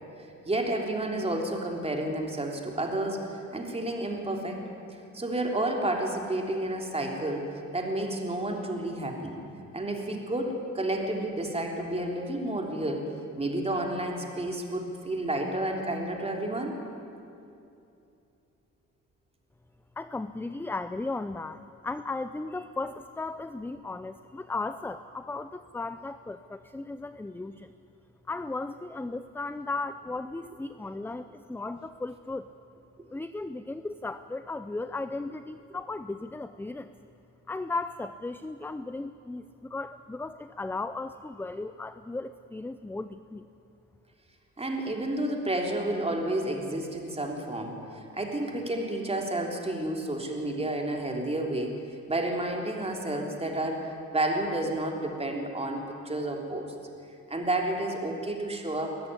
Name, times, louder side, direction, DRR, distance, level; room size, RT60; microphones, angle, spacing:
voice 1, 0.5-4.6 5.1-9.4 9.7-13.0 13.4-16.7 44.6-51.8 52.1-56.6 57.3-59.0, right 1 dB, 20° right, 2 dB, 3.5 m, -31 dB
voice 2, 20.0-27.7 28.3-32.5 33.1-36.9 37.5-43.5, left 3 dB, 5° left, 11 dB, 0.5 m, -36 dB
21.5 x 14.0 x 9.8 m, 2.6 s
cardioid pair, 90°, 30 cm